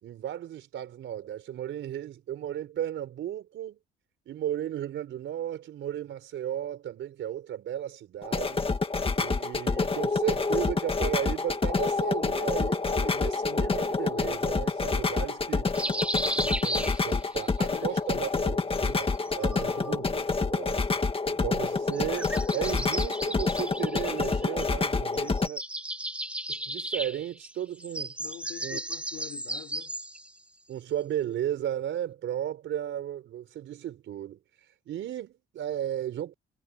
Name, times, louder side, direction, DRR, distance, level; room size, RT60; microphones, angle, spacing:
voice 1, 0.0-3.8 4.3-8.6 9.1-15.7 16.4-19.1 19.3-20.8 21.3-25.6 26.5-28.1 28.6-28.8 30.7-34.4 34.9-36.3, right 11 dB, 75° right, 4.7 m, -35 dB
sound 1, 8.2-25.5, left 4 dB, 30° left, 2.1 m, -28 dB
sound 2, 15.7-17.5 18.9-20.0 21.9-24.9 25.1-30.3, right 1 dB, 5° right, 3.3 m, -35 dB
voice 2, 17.7-18.8 28.2-29.9, left 11 dB, 70° left, 4.7 m, -45 dB
cardioid pair, 90°, 20 cm